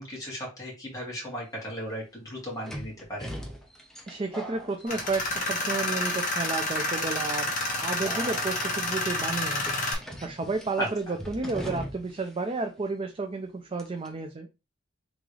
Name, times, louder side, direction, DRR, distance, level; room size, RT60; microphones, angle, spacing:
voice 1, 0.0-3.3 10.8-10.9, equal, 20° left, -4 dB, 2.2 m, -36 dB
sound 1, 1.3-1.4 2.6-5.6 5.9-6.4 7.1-7.3 8.0-8.7 9.5-12.2 12.5-12.6 13.8-14.1, equal, 5° left, 0.8 m, -40 dB
voice 2, 4.1-7.5 7.8-9.6 10.2-14.5, right 3 dB, 30° right, 5 dB, 0.5 m, -32 dB
Tools, 4.9-9.9, left 2 dB, 45° left, 1.5 m, -29 dB
3.8 x 3.6 x 3.2 m, 0.27 s
head